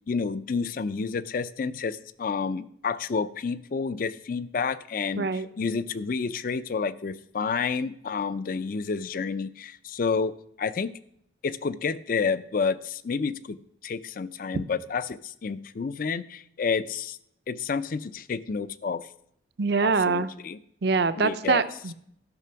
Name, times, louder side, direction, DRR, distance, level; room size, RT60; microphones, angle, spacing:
voice 1, 0.1-10.9 11.4-13.6 13.8-17.2 17.5-19.1 19.8-20.6 21.2-21.6, left 5 dB, 45° left, 16 dB, 0.4 m, -30 dB
voice 2, 5.2-5.5 19.6-20.3 20.8-21.9, right 4 dB, 55° right, 13 dB, 0.5 m, -24 dB
12.5 x 6.0 x 5.7 m, 0.70 s
head